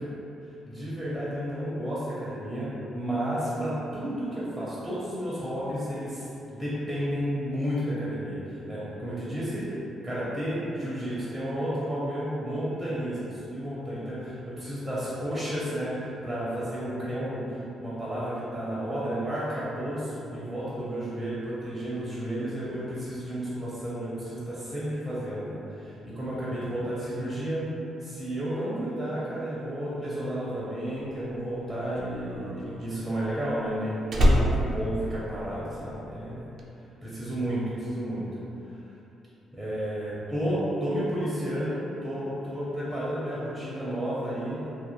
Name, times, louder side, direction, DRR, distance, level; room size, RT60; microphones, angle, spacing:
voice 1, 0.6-27.7 28.0-36.5 37.0-38.3 39.5-44.7, equal, ahead, -9 dB, 0.6 m, -32 dB
Slam, 31.2-35.9 36.2-36.6, equal, 55° right, 0.3 m, -26 dB
2.4 x 2.2 x 3.0 m, 2.9 s
cardioid pair, 90°, 0 cm